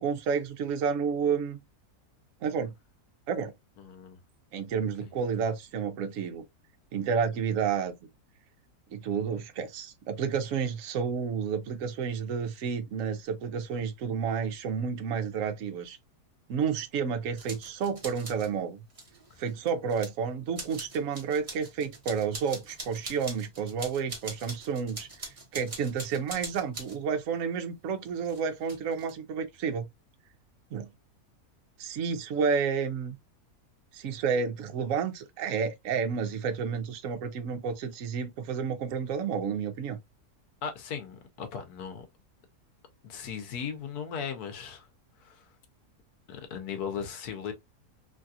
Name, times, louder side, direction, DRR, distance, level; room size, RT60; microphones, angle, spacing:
voice 1, 0.0-1.6 2.4-2.7 3.3-3.5 4.5-6.4 6.9-7.9 8.9-16.0 16.5-18.8 19.4-25.1 25.5-29.9 30.7-30.9 31.8-33.1 33.9-40.0, right 6 dB, 65° right, 1.0 m, -30 dB
voice 2, 3.8-4.2 40.6-42.1 43.0-44.9 45.2-45.4 46.3-47.5, left 7 dB, 85° left, 1.3 m, -37 dB
sound 1, 17.4-18.5 18.9-20.1 20.5-27.0 28.2-29.1, right 2 dB, 25° right, 1.0 m, -43 dB
3.2 x 2.4 x 2.6 m
omnidirectional pair, 1.6 m